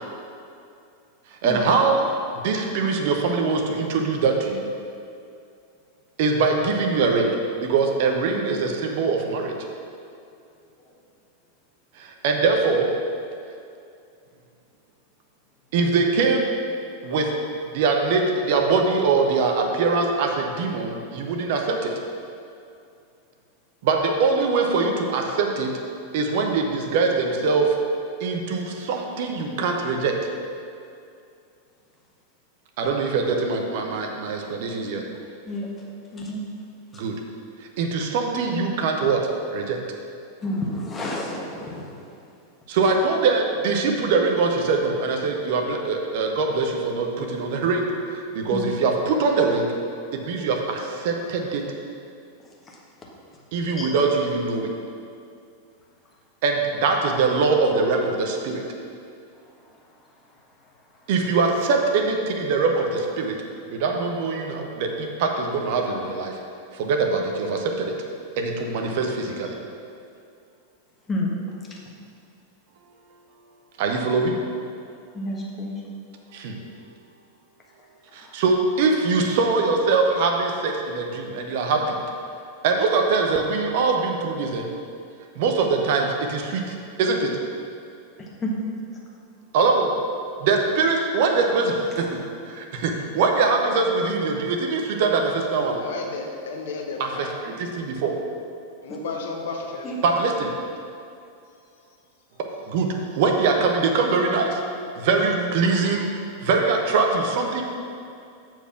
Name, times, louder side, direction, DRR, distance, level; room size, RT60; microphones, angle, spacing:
voice 1, 1.4-2.1 2.4-4.7 6.2-7.3 7.6-9.5 12.0-12.9 15.7-16.5 17.0-17.3 17.7-21.9 23.8-25.7 26.1-27.7 28.2-30.1 32.8-35.0 36.9-37.1 37.8-39.2 39.5-39.8 42.7-49.7 50.2-51.6 53.5-54.7 56.4-58.6 61.1-63.4 63.7-66.4 66.7-67.9 68.4-69.5 73.8-74.3 76.3-76.6 78.1-81.9 82.6-84.7 85.4-87.3 89.5-89.9 90.4-92.0 92.5-95.8 97.0-97.1 97.6-98.1 100.0-100.5 102.7-104.6 105.0-106.1 106.4-107.6, right 4 dB, 50° right, 2 dB, 0.8 m, -22 dB
voice 2, 36.1-36.4 40.4-41.9 42.8-42.9 48.5-48.6 53.8-53.9 71.1-71.3 75.1-75.7 78.2-78.3 88.2-88.5 99.8-100.0 105.2-105.3, left 1 dB, 20° left, -2 dB, 1.4 m, -29 dB
voice 3, 95.8-97.5 98.8-100.4 101.5-101.7, left 4 dB, 55° left, 2 dB, 0.7 m, -33 dB
6.9 x 4.5 x 5.8 m, 2.5 s
figure-of-eight pair, 90°, 0 cm